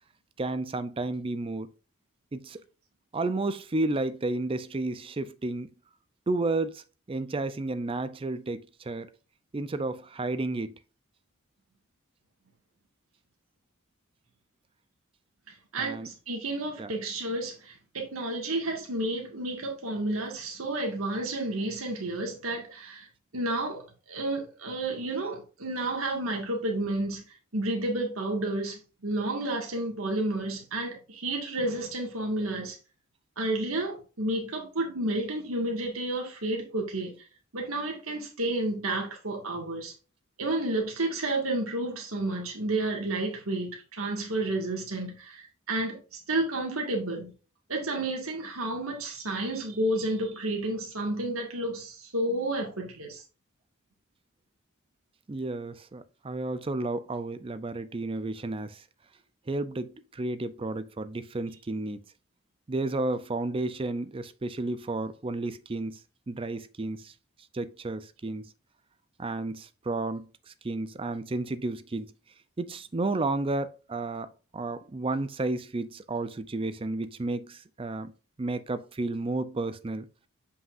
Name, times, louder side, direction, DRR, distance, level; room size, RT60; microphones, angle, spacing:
voice 1, 0.4-1.7 2.3-2.6 3.1-5.7 6.3-9.1 9.5-10.8 15.8-16.1 16.8-16.9 55.3-58.8 59.5-62.0 62.7-66.0 66.3-67.1 67.5-68.5 69.2-72.1 72.6-78.1 78.4-80.1, right 2 dB, 25° right, 0.4 m, -32 dB
voice 2, 15.5-23.1 23.3-32.8 33.4-37.2 37.5-39.9 40.4-47.3 47.7-53.2, right 2 dB, 85° right, 1.8 m, -31 dB
7.6 x 5.6 x 2.5 m
head